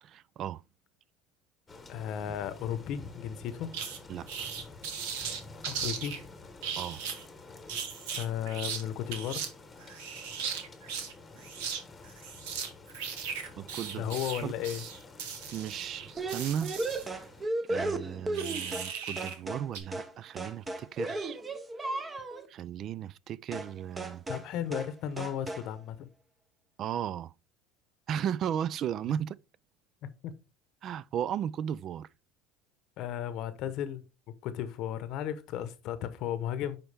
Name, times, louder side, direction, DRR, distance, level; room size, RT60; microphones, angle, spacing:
voice 1, 0.0-0.6 4.1-4.5 6.7-7.0 13.6-14.1 14.4-14.9 15.5-16.7 17.1-17.2 17.7-21.4 22.5-24.2 26.8-27.3 28.1-29.4 30.8-32.1, right 9 dB, 40° right, 0.3 m, -35 dB
sound 1, 1.7-17.5, left 3 dB, 15° left, 1.1 m, -50 dB
voice 2, 1.9-3.7 5.6-6.1 8.1-9.4 13.9-14.8 24.3-26.1 30.2-30.3 33.0-34.0 34.4-36.8, left 10 dB, 55° left, 0.8 m, -34 dB
sound 2, 3.7-4.0 4.3-6.2 6.6-7.2 7.7-8.8 9.1-9.5 9.8-11.1 11.4-11.8 12.1-17.1 18.3-19.4 19.7-19.8, right 7 dB, 80° right, 1.5 m, -37 dB
sound 3, 16.2-18.9 19.2-19.7 19.9-20.1 20.4-22.5 23.5-23.7 24.0-24.5 24.7-24.9 25.2-25.7, right 2 dB, 15° right, 0.8 m, -35 dB
9.7 x 4.4 x 3.4 m
supercardioid pair, 135°, 0 cm